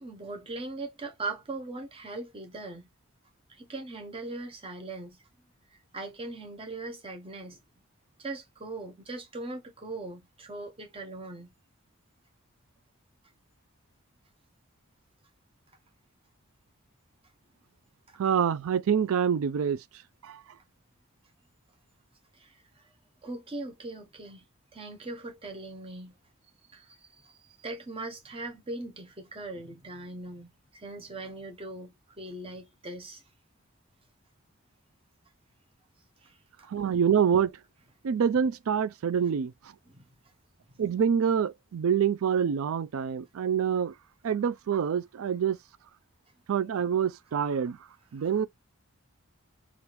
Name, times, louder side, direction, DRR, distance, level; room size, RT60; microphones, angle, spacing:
voice 1, 0.0-2.9 3.5-5.2 5.9-7.6 8.2-11.5 18.1-18.2 22.4-22.5 23.2-24.4 24.7-26.1 26.7-27.0 27.2-33.2 36.2-36.7 39.9-40.0, right 2 dB, 25° right, 0.8 m, -40 dB
voice 2, 18.2-19.8 20.2-20.4 36.7-37.5 38.0-39.5 40.8-43.9 44.2-45.6 46.5-47.8 48.1-48.5, right 7 dB, 70° right, 0.4 m, -26 dB
3.4 x 2.5 x 3.0 m
head